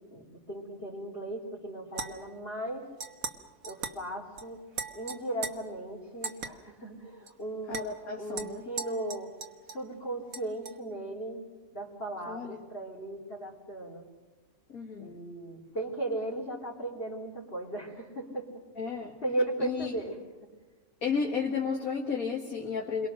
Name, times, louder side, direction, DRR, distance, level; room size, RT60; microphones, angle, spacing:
voice 1, 0.0-2.9 3.6-4.6 4.9-7.9 8.2-9.3 9.7-11.4 11.7-14.0 15.0-20.2, right 1 dB, 40° left, -6 dB, 3.4 m, -37 dB
sound 1, 1.9-2.4 3.0-3.4 3.6-4.0 4.4-4.5 4.7-5.5 6.2-6.5 7.3-7.4 7.7-7.8 8.4-9.9 10.3-10.8, right 5 dB, 70° right, 1.8 m, -39 dB
voice 2, 7.7-8.6 12.3-12.6 14.7-15.2 18.8-19.2 19.6-19.9 21.0-23.1, left 5 dB, 70° left, 0 dB, 2.2 m, -33 dB
28.5 x 22.5 x 6.4 m, 1.3 s
omnidirectional pair, 1.5 m